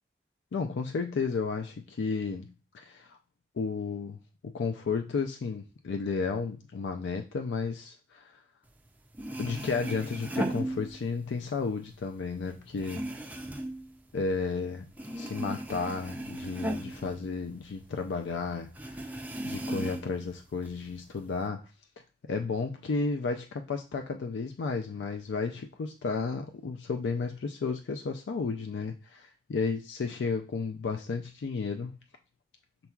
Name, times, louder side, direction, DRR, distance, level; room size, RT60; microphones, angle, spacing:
voice 1, 0.5-3.2 3.6-4.2 4.4-8.4 9.4-13.2 14.1-14.9 15.2-19.1 19.4-21.7 22.3-32.0, left 4 dB, 85° left, 5 dB, 0.4 m, -33 dB
sound 1, 8.9-9.0 9.1-11.4 11.7-14.6 14.9-17.9 18.2-18.3 18.8-20.2 20.6-21.4, right 1 dB, 10° right, 0.3 m, -36 dB
5.7 x 4.0 x 2.3 m, 0.32 s
head